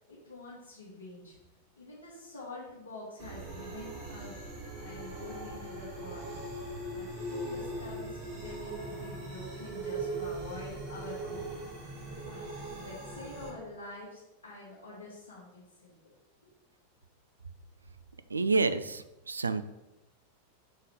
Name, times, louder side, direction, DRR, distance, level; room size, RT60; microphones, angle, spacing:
voice 1, 0.1-1.4 1.8-4.3 4.8-6.4 6.9-11.6 12.2-16.1, left 2 dB, 70° left, -7 dB, 1.5 m, -46 dB
sound 1, 3.2-13.5, right 2 dB, 30° right, 2.1 m, -40 dB
voice 2, 18.3-19.6, right 3 dB, 75° right, 12 dB, 0.3 m, -29 dB
5.6 x 3.7 x 4.8 m, 0.93 s
figure-of-eight pair, 90°, 0 cm